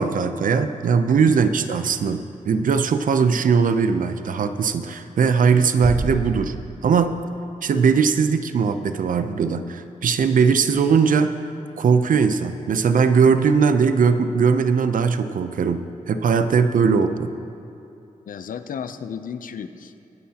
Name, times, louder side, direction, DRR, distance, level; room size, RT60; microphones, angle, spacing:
voice 1, 0.0-6.5 6.8-7.2 7.6-11.3 11.8-17.3, right 5 dB, 75° right, 9 dB, 0.6 m, -19 dB
sound 1, 5.8-7.4, equal, 5° right, 2.6 m, -30 dB
voice 2, 18.3-20.0, left 7 dB, 75° left, 10 dB, 0.6 m, -33 dB
23.0 x 9.4 x 2.9 m, 2.7 s
wide cardioid pair, 100°, 14 cm